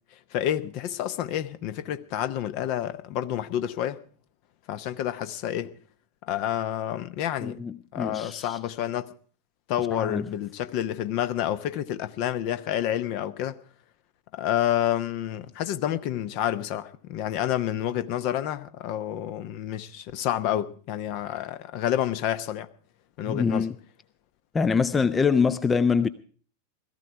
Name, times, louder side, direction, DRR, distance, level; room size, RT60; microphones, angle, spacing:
voice 1, 0.3-4.0 4.7-5.8 6.3-7.6 7.9-9.1 9.7-13.6 14.3-22.7 23.2-23.7, left 11 dB, 45° left, 0.9 m, -29 dB
voice 2, 7.4-8.6 9.9-10.3 23.3-23.7 24.5-26.1, left 5 dB, 15° left, 0.6 m, -24 dB
17.5 x 14.0 x 4.7 m
figure-of-eight pair, 90°, 0 cm